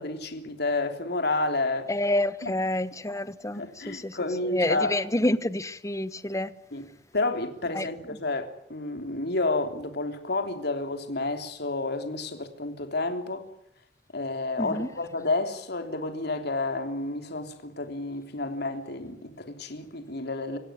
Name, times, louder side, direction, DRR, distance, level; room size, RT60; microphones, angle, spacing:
voice 1, 0.0-1.9 2.4-2.5 3.6-4.9 6.7-6.8 7.1-13.5 14.1-20.6, left 2 dB, 65° left, 3.4 m, -30 dB
voice 2, 1.9-6.5 7.7-7.9 14.6-14.9, left 1 dB, 15° left, 1.2 m, -28 dB
26.0 x 17.0 x 9.7 m
head